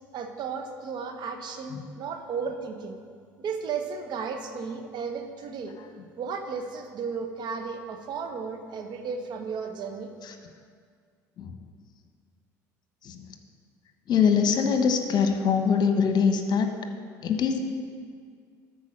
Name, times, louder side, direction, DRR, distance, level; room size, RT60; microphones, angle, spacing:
voice 1, 0.1-3.0 3.4-5.7 6.2-10.2, right 5 dB, 50° right, 5 dB, 1.1 m, -34 dB
voice 2, 14.1-16.7 17.2-17.6, left 6 dB, 50° left, 6 dB, 1.1 m, -23 dB
13.0 x 4.7 x 6.2 m, 2.1 s
hypercardioid pair, 60°, 9 cm